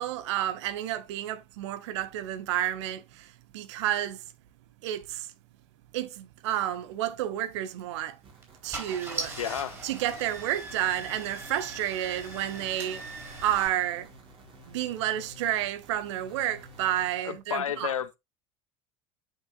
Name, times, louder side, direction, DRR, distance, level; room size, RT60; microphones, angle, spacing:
voice 1, 0.0-3.3 3.5-4.2 4.8-5.3 5.9-8.2 8.6-9.3 9.8-13.0 13.4-14.1 14.7-17.9, right 12 dB, 60° right, 0.8 m, -30 dB
Car / Engine starting, 7.6-7.8 8.4-8.5 8.7-13.7, right 3 dB, 15° right, 3.9 m, -40 dB
sound 1, 8.2-17.1, left 1 dB, 30° right, 3.4 m, -52 dB
voice 2, 9.4-9.8 17.2-18.2, left 9 dB, 75° left, 0.5 m, -31 dB
8.3 x 6.0 x 2.4 m
figure-of-eight pair, 75°, 17 cm